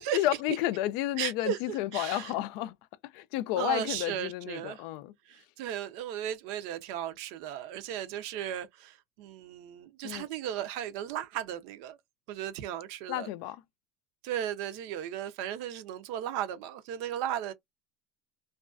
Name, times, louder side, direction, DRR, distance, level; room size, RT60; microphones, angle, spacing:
voice 1, 0.0-2.8 3.0-5.1 10.0-10.3 13.1-13.6, left 14 dB, 70° left, 0.3 m, -31 dB
voice 2, 1.2-2.3 3.6-4.8 5.3-12.0 12.3-13.3 14.2-17.5, right 10 dB, 70° right, 0.5 m, -36 dB
2.4 x 2.2 x 2.3 m
supercardioid pair, 130°, 0 cm